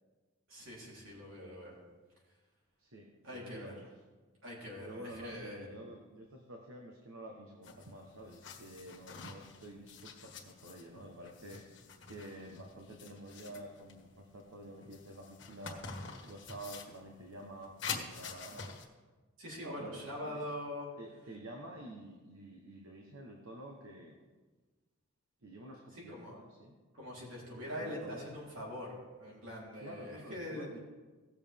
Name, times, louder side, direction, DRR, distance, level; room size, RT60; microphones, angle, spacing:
voice 1, 0.5-1.8 3.2-3.7 4.4-5.7 19.4-20.9 25.9-26.3 26.9-30.7, left 1 dB, 75° right, -5 dB, 3.7 m, -43 dB
voice 2, 2.8-3.8 4.8-11.6 12.1-18.7 19.6-20.4 21.0-24.1 25.4-26.7 27.5-28.2 29.8-30.8, right 1 dB, 90° right, 0 dB, 1.2 m, -49 dB
sound 1, 7.6-18.9, left 5 dB, 60° left, 1.4 m, -47 dB
17.5 x 7.1 x 3.6 m, 1.3 s
head